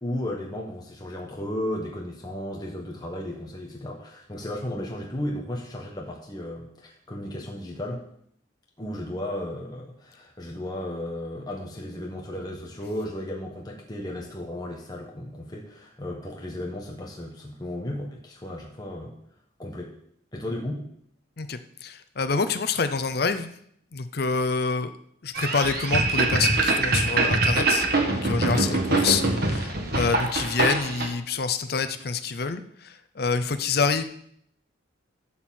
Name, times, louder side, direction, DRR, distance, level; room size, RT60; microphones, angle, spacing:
voice 1, 0.0-8.0 8.8-19.2 19.6-19.9 20.3-20.9 28.5-28.8, left 1 dB, 20° left, -1 dB, 1.2 m, -34 dB
voice 2, 21.4-23.5 23.9-24.9 25.2-34.0, left 4 dB, 50° left, 11 dB, 0.6 m, -27 dB
sound 1, 25.3-31.1, right 3 dB, 50° right, 1.5 m, -24 dB
12.5 x 4.4 x 7.5 m, 0.68 s
head